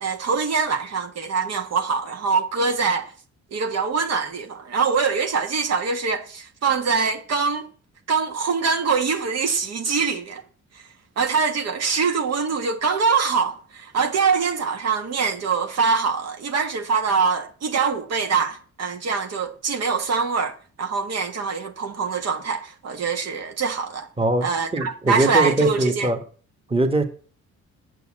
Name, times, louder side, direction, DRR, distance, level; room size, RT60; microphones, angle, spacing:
voice 1, 0.0-3.1 3.5-7.7 8.1-10.4 11.2-24.1 24.4-26.1, right 5 dB, 55° right, 1.4 m, -24 dB
voice 2, 24.2-24.5 24.7-26.2 26.7-27.0, right 2 dB, 20° right, 1.6 m, -21 dB
7.7 x 6.8 x 7.6 m
cardioid pair, 90°, 30 cm